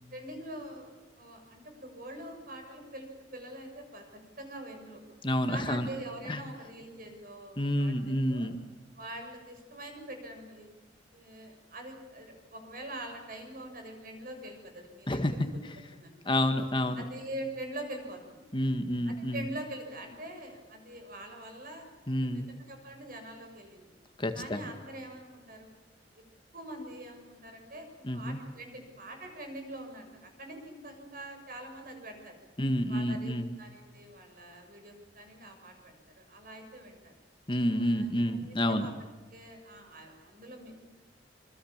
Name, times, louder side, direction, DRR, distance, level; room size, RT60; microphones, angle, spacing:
voice 1, 0.1-5.0 5.5-8.5 8.9-10.7 11.1-15.4 16.0-16.4 17.0-18.5 19.0-23.9 24.3-25.7 26.1-26.2 26.5-27.9 28.1-32.4 32.9-37.1 37.7-38.9 39.3-40.8, right 1 dB, 50° right, 4 dB, 7.0 m, -44 dB
voice 2, 5.2-5.9 6.3-6.4 7.6-8.6 15.1-15.8 16.3-17.0 18.5-19.4 22.1-22.5 24.2-24.6 28.0-28.4 32.6-33.5 37.5-38.9, left 1 dB, 25° left, 7 dB, 1.7 m, -29 dB
27.0 x 24.5 x 7.4 m, 1.3 s
head